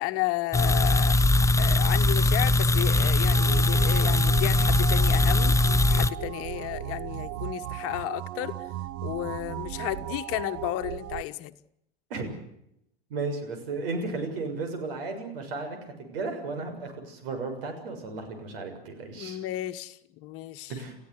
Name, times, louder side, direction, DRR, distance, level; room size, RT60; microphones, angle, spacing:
voice 1, 0.0-8.5 9.0-11.5 19.1-20.7, left 17 dB, 50° left, 10 dB, 1.4 m, -33 dB
sound 1, 0.5-6.1, left 2 dB, 10° left, 1.0 m, -21 dB
sound 2, 3.3-11.2, right 13 dB, 50° right, 1.2 m, -36 dB
voice 2, 13.1-19.4 20.7-21.0, right 3 dB, 70° right, 6 dB, 6.7 m, -34 dB
29.5 x 15.5 x 8.1 m, 0.79 s
hypercardioid pair, 80°, 30 cm